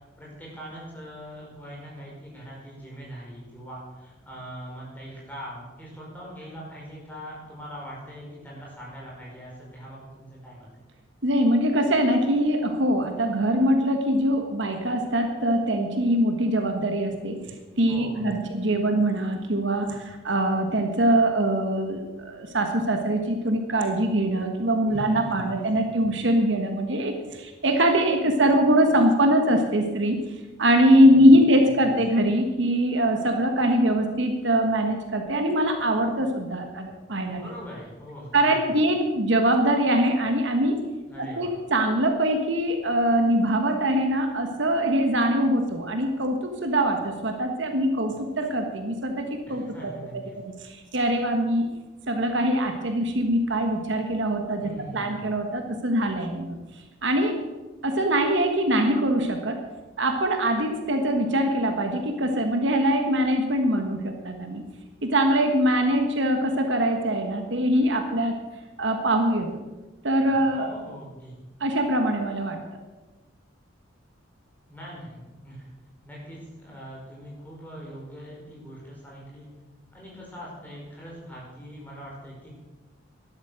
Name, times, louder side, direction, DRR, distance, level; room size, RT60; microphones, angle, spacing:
voice 1, 0.2-10.8 17.9-18.5 24.9-25.5 25.7-25.9 31.1-31.3 31.6-31.9 37.3-38.8 41.1-41.6 49.5-50.4 54.6-55.3 70.3-71.4 74.7-75.7 76.0-79.5 79.9-82.5, equal, 10° left, -5 dB, 5.0 m, -42 dB
voice 2, 11.2-17.4 17.8-30.2 30.6-37.4 38.3-40.8 41.2-49.9 50.4-51.7 52.1-56.6 57.0-57.4 57.8-59.6 60.0-64.6 65.0-68.4 68.8-69.6 70.0-70.7 71.6-72.6, right 1 dB, 60° right, 5 dB, 1.4 m, -23 dB
12.5 x 11.0 x 6.3 m, 1.2 s
head